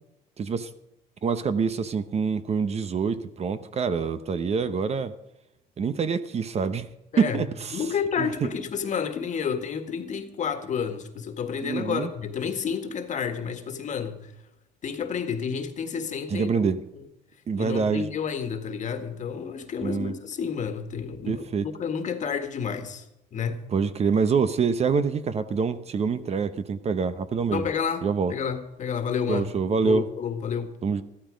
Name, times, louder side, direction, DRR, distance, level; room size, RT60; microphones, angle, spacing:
voice 1, 0.4-0.7 1.2-5.1 5.8-6.9 7.2-7.8 8.2-8.5 11.6-12.1 16.3-16.8 17.5-18.1 19.8-20.1 21.3-21.7 23.7-27.7 28.0-28.3 29.3-30.1 30.8-31.0, right 5 dB, 40° right, 0.9 m, -26 dB
voice 2, 7.7-14.3 14.8-17.0 17.5-23.1 23.3-23.6 27.5-29.5 29.8-30.8, left 7 dB, 45° left, 1.7 m, -30 dB
14.0 x 13.0 x 5.2 m
cardioid pair, 110°, 17 cm